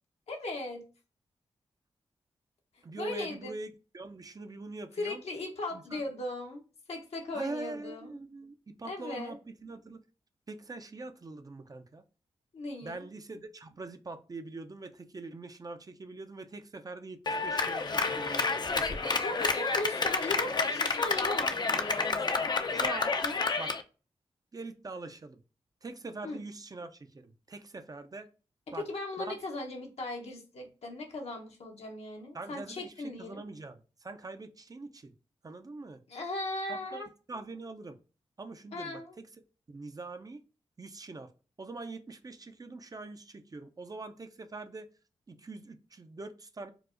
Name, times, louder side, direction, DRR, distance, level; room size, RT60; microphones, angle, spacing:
voice 1, 0.3-0.9 3.0-3.6 5.0-6.6 6.9-8.2 8.8-9.3 12.5-13.0 19.2-22.7 23.2-23.4 26.2-26.4 28.7-33.4 36.1-37.1 38.7-39.2, left 2 dB, 75° left, 0.8 m, -38 dB
voice 2, 2.8-5.2 5.7-6.0 7.3-10.0 10.5-12.0 12.8-19.1 22.7-23.1 23.6-23.7 24.5-25.4 25.8-28.3 28.7-28.9 29.2-29.3 32.3-35.1 35.4-36.0 36.7-38.0 38.4-39.3 39.7-40.4 40.8-41.3 41.6-44.9 45.3-46.7, right 3 dB, 35° right, 0.4 m, -43 dB
Clapping, 17.3-23.8, left 4 dB, 40° left, 0.4 m, -30 dB
4.6 x 2.0 x 2.5 m
cardioid pair, 40°, 11 cm